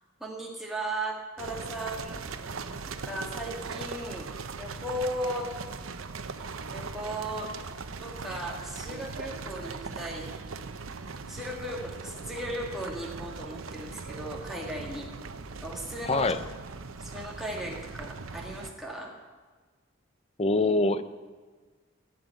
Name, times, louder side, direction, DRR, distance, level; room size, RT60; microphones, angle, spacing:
voice 1, 0.2-2.4 2.9-4.3 4.6-5.5 6.7-7.5 8.0-10.4 11.3-15.1 15.6-16.3 17.0-19.1, right 1 dB, ahead, -2 dB, 1.8 m, -36 dB
sound 1, 1.4-18.7, right 4 dB, 90° right, 0.8 m, -40 dB
voice 2, 16.1-16.4 20.4-21.0, left 2 dB, 30° left, 12 dB, 0.6 m, -24 dB
15.0 x 6.7 x 9.0 m, 1.4 s
head